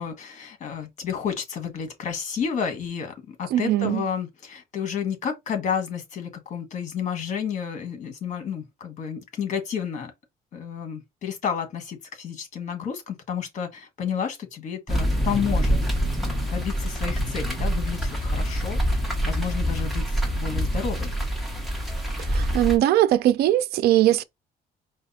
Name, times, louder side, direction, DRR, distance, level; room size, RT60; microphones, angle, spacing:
voice 1, 0.0-10.1 10.5-15.8 16.2-19.0 19.2-21.1, left 7 dB, 50° left, 1.4 m, -31 dB
voice 2, 3.5-4.0 22.3-24.2, right 13 dB, 80° right, 0.4 m, -20 dB
sound 1, 14.9-22.8, equal, ahead, 1.2 m, -26 dB
4.8 x 2.3 x 4.1 m
cardioid pair, 145°, 16 cm